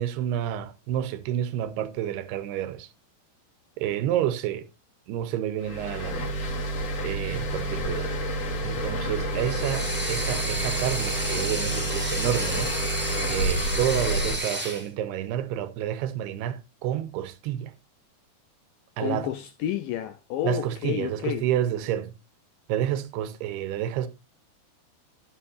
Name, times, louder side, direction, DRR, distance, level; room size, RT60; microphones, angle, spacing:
voice 1, 0.0-2.9 3.8-4.6 5.1-6.3 7.0-8.1 8.6-12.7 13.3-17.7 19.0-19.3 20.4-22.1 22.7-24.1, right 11 dB, 85° right, 2.8 m, -29 dB
sound 1, 5.6-14.4, right 1 dB, 50° left, 4.3 m, -29 dB
sound 2, 9.3-14.9, right 1 dB, 10° right, 0.6 m, -31 dB
voice 2, 19.0-21.5, left 12 dB, 80° left, 2.0 m, -30 dB
13.0 x 10.5 x 2.6 m
omnidirectional pair, 4.8 m